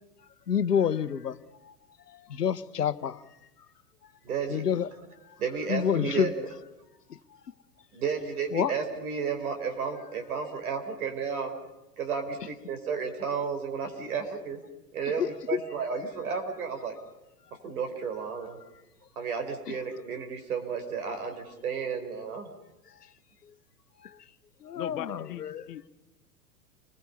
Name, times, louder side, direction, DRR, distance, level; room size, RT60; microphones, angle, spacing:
voice 1, 0.5-1.4 1.6-1.7 2.1-3.2 4.5-4.9 5.7-6.3 7.1-7.2 8.5-8.7 15.2-15.3 24.0-24.2 24.6-25.6, left 8 dB, 80° left, 14 dB, 1.0 m, -28 dB
voice 2, 4.2-4.6 5.4-6.5 7.9-11.5 12.0-14.6 14.9-17.0 17.6-18.6 19.2-22.5, right 6 dB, 65° right, 5 dB, 4.6 m, -32 dB
voice 3, 24.7-25.9, left 12 dB, 55° left, 9 dB, 1.5 m, -39 dB
29.5 x 20.5 x 5.6 m, 0.96 s
figure-of-eight pair, 100°, 46 cm